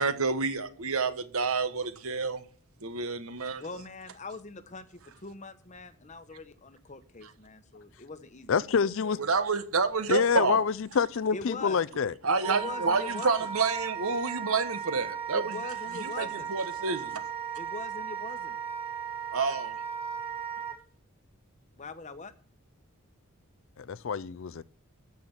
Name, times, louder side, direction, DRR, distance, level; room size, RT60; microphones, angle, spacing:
voice 1, 0.0-2.4 2.8-3.6 9.2-10.6 12.2-15.7 16.0-17.2 19.3-19.8, right 4 dB, 70° right, 1.2 m, -29 dB
voice 2, 3.6-9.2 11.3-11.8 12.5-13.5 15.3-16.5 17.6-18.6 21.8-22.3, left 3 dB, 30° left, 1.0 m, -42 dB
voice 3, 8.5-9.2 10.1-12.1 23.8-24.6, left 6 dB, 60° left, 0.4 m, -27 dB
Wind instrument woodwind instrument, 12.4-20.8, right 7 dB, 25° right, 1.7 m, -36 dB
13.5 x 6.0 x 7.3 m
head